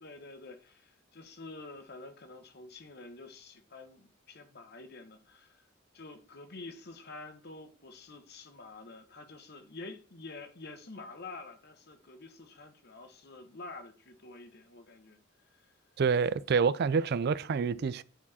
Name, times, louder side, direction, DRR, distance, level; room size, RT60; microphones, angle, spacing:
voice 1, 0.0-5.7 5.9-15.2 15.5-15.7, left 3 dB, 55° left, 1.2 m, -48 dB
voice 2, 16.0-18.0, right 5 dB, 55° right, 0.4 m, -27 dB
9.4 x 4.7 x 4.2 m
head